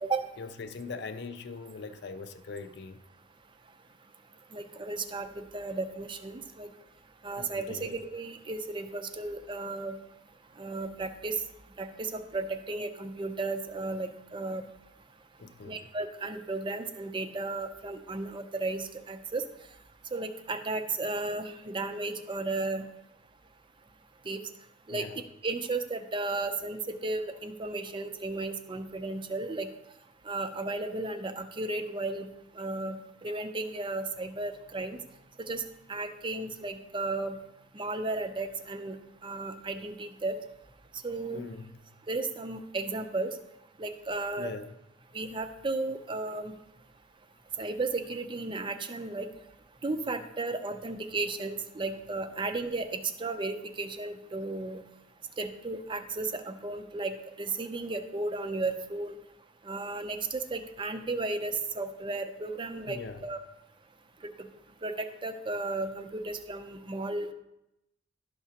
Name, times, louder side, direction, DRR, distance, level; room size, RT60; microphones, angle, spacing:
voice 1, 0.4-3.0 7.4-7.9 15.4-15.8 24.9-25.2 41.3-41.7 44.4-44.7 62.9-63.2, left 4 dB, 60° left, 0.5 m, -41 dB
voice 2, 4.5-6.7 7.2-9.9 10.6-11.4 11.8-14.6 15.7-19.4 20.1-22.8 24.3-24.4 24.9-25.1 25.4-29.7 30.3-32.3 32.6-33.0 33.2-35.0 35.5-35.6 35.9-37.3 37.7-39.0 39.2-40.4 41.0-41.5 42.1-43.3 43.8-44.5 45.1-46.5 47.6-49.3 49.8-54.8 55.4-57.1 57.4-59.2 59.7-63.0 63.2-63.4 64.8-67.3, right 3 dB, 25° right, 0.5 m, -34 dB
11.5 x 5.8 x 2.8 m
head